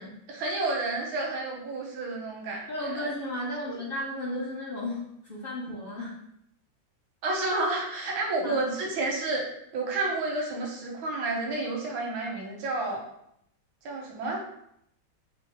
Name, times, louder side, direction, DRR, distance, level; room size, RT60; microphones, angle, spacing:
voice 1, 0.3-2.7 3.7-3.8 7.2-9.4 9.7-13.0 13.8-14.4, right 2 dB, 90° right, -1 dB, 1.6 m, -30 dB
voice 2, 2.7-6.2 8.4-8.6, left 1 dB, 50° left, -6 dB, 0.7 m, -34 dB
5.2 x 2.0 x 3.4 m, 0.75 s
omnidirectional pair, 2.1 m